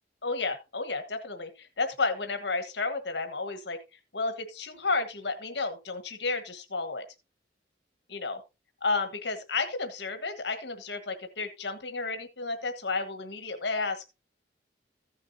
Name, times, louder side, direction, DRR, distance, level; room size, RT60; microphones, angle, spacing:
voice 1, 0.2-3.8 4.1-7.0 8.1-8.4 8.8-14.1, left 3 dB, 75° left, 7 dB, 1.4 m, -32 dB
15.0 x 7.2 x 2.7 m, 0.27 s
head